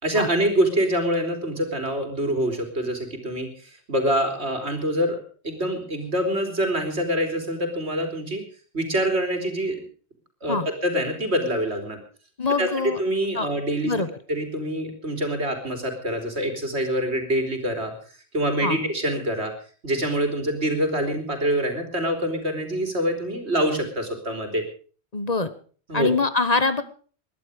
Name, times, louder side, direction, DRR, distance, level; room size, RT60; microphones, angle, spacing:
voice 1, 0.0-8.4 8.7-9.8 10.4-12.0 12.6-12.7 13.0-13.9 14.3-17.9 18.3-19.5 19.8-24.6 25.9-26.1, right 1 dB, 80° right, 6 dB, 3.8 m, -25 dB
voice 2, 12.4-13.0 13.3-13.5 13.8-14.1 18.6-18.8 25.1-25.5 25.9-26.8, left 3 dB, 40° left, 12 dB, 1.3 m, -23 dB
21.0 x 12.0 x 5.1 m, 0.41 s
omnidirectional pair, 1.1 m